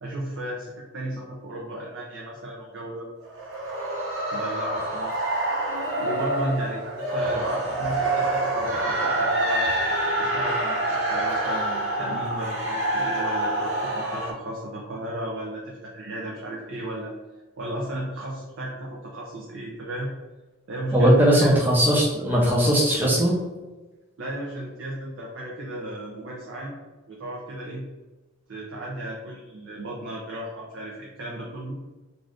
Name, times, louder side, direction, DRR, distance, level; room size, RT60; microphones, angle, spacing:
voice 1, 0.0-3.1 4.3-5.4 6.0-9.7 10.2-17.1 17.6-20.1 20.7-21.6 24.2-26.7 27.1-27.8 28.5-31.8, right 1 dB, 70° right, -3 dB, 0.5 m, -34 dB
sound 1, 3.2-14.3, right 1 dB, 85° right, 0.9 m, -26 dB
voice 2, 20.9-23.4, equal, 10° right, -6 dB, 0.5 m, -19 dB
2.5 x 2.5 x 3.3 m, 1.2 s
head